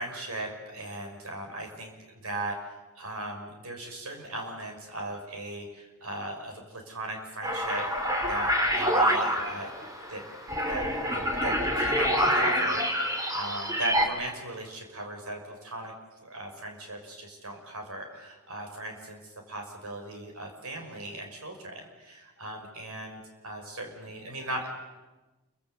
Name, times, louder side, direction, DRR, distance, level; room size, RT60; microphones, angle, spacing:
voice 1, 0.0-1.9 2.2-7.8 8.2-9.7 10.1-10.2 10.7-12.8 13.3-15.9 16.2-19.2 19.5-24.7, right 1 dB, 75° right, 3 dB, 6.2 m, -38 dB
sound 1, 7.4-14.1, equal, 15° right, 3.1 m, -27 dB
28.5 x 24.5 x 8.2 m, 1.2 s
head